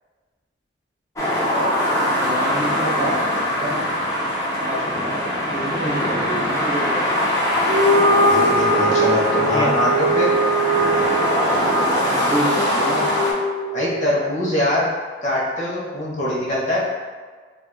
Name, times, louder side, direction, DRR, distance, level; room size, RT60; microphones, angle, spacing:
sound 1, 1.2-13.3, equal, 15° left, 0.5 m, -22 dB
voice 1, 2.2-3.9 4.6-5.2 5.5-6.9 9.4-10.1 11.9-13.0, equal, 20° right, -8 dB, 0.7 m, -28 dB
sound 2, 7.6-14.2, right 1 dB, 55° right, 0.5 m, -21 dB
voice 2, 8.3-10.3 13.7-14.9 15.2-16.8, left 1 dB, 40° left, -7 dB, 0.8 m, -23 dB
2.6 x 2.3 x 3.8 m, 1.5 s
head